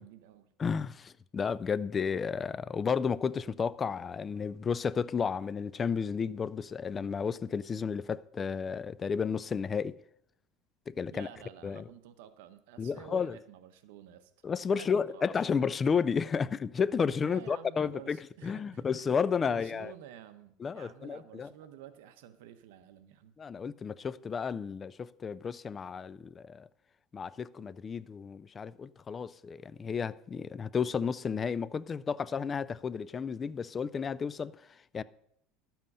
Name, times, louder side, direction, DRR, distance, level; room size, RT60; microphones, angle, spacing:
voice 1, 0.0-0.5 11.1-14.3 14.7-15.7 17.2-19.1 19.4-23.3, right 10 dB, 80° right, 1.0 m, -51 dB
voice 2, 0.6-9.9 10.9-11.3 11.6-11.8 12.8-13.4 14.4-19.9 20.6-21.5 23.4-26.7 27.1-34.5 34.9-35.0, left 6 dB, 20° left, 0.3 m, -32 dB
12.0 x 7.5 x 5.5 m
supercardioid pair, 140°, 0 cm